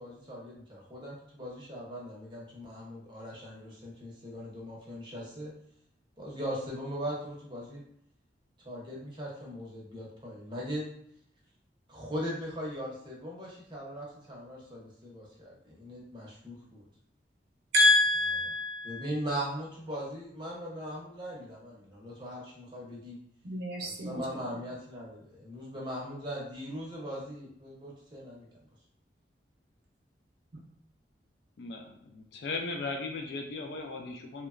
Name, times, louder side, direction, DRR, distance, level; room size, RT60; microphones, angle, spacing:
voice 1, 0.0-5.5 6.2-7.8 8.6-10.9 11.9-16.9 18.4-18.5 18.8-23.2 23.8-28.6, equal, 25° right, -4 dB, 0.7 m, -39 dB
voice 2, 17.7-19.0 23.4-24.2, left 2 dB, 65° right, -2 dB, 0.6 m, -26 dB
voice 3, 31.6-34.5, left 3 dB, 65° left, 3 dB, 0.3 m, -37 dB
2.9 x 2.1 x 2.4 m, 0.68 s
head